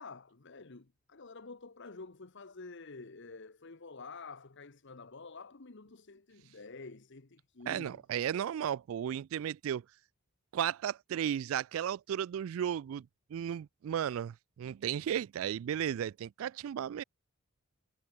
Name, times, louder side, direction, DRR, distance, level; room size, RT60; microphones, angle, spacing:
voice 1, 0.0-8.0, left 3 dB, 55° left, 1.1 m, -49 dB
voice 2, 7.7-9.8 10.5-17.0, right 9 dB, 70° right, 0.3 m, -34 dB
head